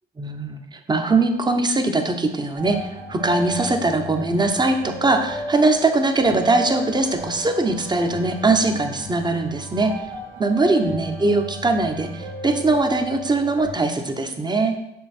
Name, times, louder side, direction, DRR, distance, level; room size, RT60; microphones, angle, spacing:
voice 1, 0.2-10.1 10.4-14.8, right 2 dB, 20° right, 6 dB, 0.9 m, -21 dB
sound 1, 2.6-13.7, equal, 85° right, 1.7 m, -34 dB
6.9 x 5.5 x 4.4 m, 0.87 s
cardioid pair, 90°, 20 cm